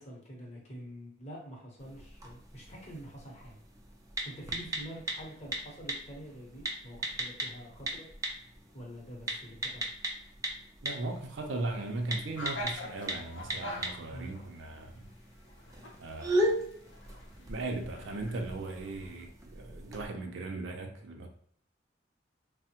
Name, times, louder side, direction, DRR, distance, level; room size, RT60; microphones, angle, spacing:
voice 1, 0.0-3.6 4.2-8.1 8.7-9.8 14.1-14.4, right 1 dB, 35° left, -2 dB, 0.8 m, -46 dB
sound 1, 1.8-20.1, right 1 dB, 20° right, 0.4 m, -38 dB
voice 2, 10.8-15.1 16.0-16.7 17.5-21.3, right 2 dB, 70° right, 3 dB, 0.5 m, -38 dB
sound 2, 11.1-19.3, left 1 dB, 75° left, 0.6 m, -46 dB
3.3 x 2.0 x 2.8 m, 0.65 s
head